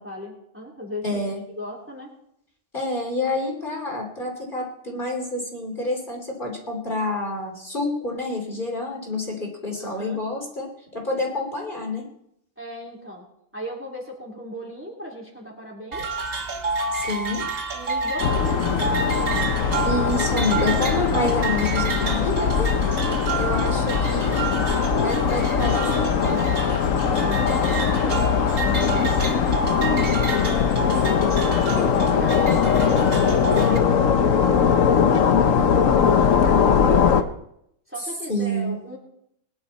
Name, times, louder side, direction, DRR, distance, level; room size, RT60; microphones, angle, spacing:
voice 1, 0.0-1.2 1.5-2.1 9.8-10.2 12.6-13.3 13.5-16.1 17.7-19.1 23.1-23.4 26.9-28.3 28.8-37.3 37.9-39.0, left 1 dB, 10° right, -2 dB, 3.3 m, -37 dB
voice 2, 1.0-1.4 2.7-12.0 16.9-17.5 19.8-22.7 23.3-24.4 25.0-26.4 38.3-38.8, left 2 dB, 40° left, 0 dB, 3.1 m, -28 dB
sound 1, 15.9-33.8, right 3 dB, 50° right, 1.4 m, -29 dB
sound 2, 18.2-37.2, left 7 dB, 85° left, 1.3 m, -20 dB
21.5 x 10.5 x 4.2 m, 0.76 s
omnidirectional pair, 1.3 m